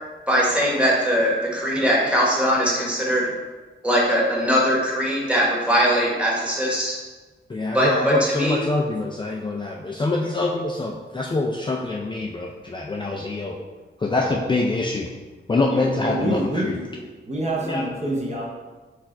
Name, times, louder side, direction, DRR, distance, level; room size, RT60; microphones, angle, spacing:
voice 1, 0.3-3.3 3.8-7.0 7.7-8.6, equal, 5° right, -5 dB, 1.2 m, -21 dB
voice 2, 7.5-13.6 14.0-15.1 15.5-16.8 17.7-17.8, left 2 dB, 25° left, -1 dB, 0.4 m, -25 dB
voice 3, 15.7-16.9 17.3-18.5, right 1 dB, 35° right, -2 dB, 0.8 m, -27 dB
4.5 x 2.4 x 4.3 m, 1.3 s
wide cardioid pair, 90°, 20 cm